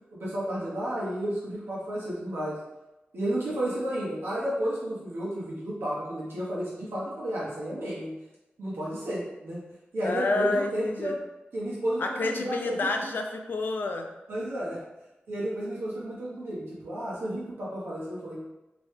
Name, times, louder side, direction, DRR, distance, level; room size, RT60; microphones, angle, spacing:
voice 1, 0.1-2.6 3.1-8.1 8.6-9.6 9.9-11.1 11.5-12.9 14.3-14.8 15.3-18.4, right 1 dB, 80° right, -7 dB, 1.1 m, -32 dB
voice 2, 10.0-11.2 12.0-14.1, left 3 dB, 60° left, 4 dB, 0.4 m, -29 dB
3.2 x 3.0 x 3.2 m, 1.0 s
wide cardioid pair, 155°, 4 cm